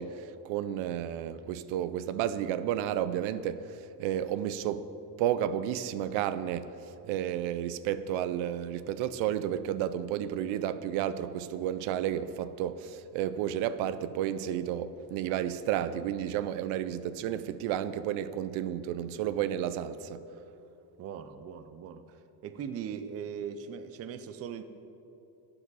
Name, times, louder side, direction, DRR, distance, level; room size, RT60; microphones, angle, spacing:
voice 1, 0.0-4.9 5.2-20.2, right 10 dB, 90° right, 0.6 m, -32 dB
voice 2, 21.0-24.6, right 7 dB, 35° right, 0.4 m, -40 dB
12.0 x 8.6 x 4.1 m
cardioid pair, 150°, 46 cm